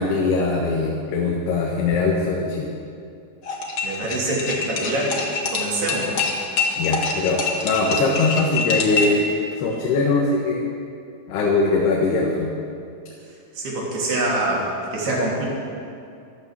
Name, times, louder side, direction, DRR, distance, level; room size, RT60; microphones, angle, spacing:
voice 1, 0.0-2.7 6.8-9.3 9.6-10.7 11.3-12.5, left 3 dB, 85° left, -2 dB, 3.5 m, -21 dB
sound 1, 3.4-9.2, left 4 dB, 45° left, 1.8 m, -25 dB
voice 2, 3.8-5.2 5.5-6.1 13.5-15.5, right 2 dB, 80° right, -4 dB, 5.1 m, -25 dB
14.0 x 13.0 x 7.4 m, 2.5 s
omnidirectional pair, 4.5 m